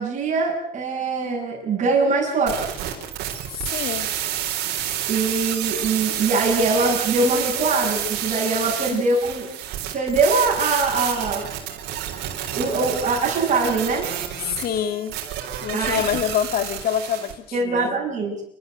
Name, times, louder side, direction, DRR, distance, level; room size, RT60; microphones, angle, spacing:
voice 1, 0.0-2.7 5.1-9.5 9.9-11.5 12.6-14.1 15.7-16.0 17.5-18.4, right 3 dB, 45° right, -6 dB, 7.7 m, -22 dB
sound 1, 2.5-17.3, right 11 dB, 85° right, 4.2 m, -29 dB
voice 2, 3.5-4.1 8.9-9.0 14.5-15.2 15.6-17.3 17.6-18.0, left 9 dB, 65° left, 12 dB, 2.1 m, -26 dB
29.0 x 13.5 x 8.1 m, 0.66 s
cardioid pair, 110°, 17 cm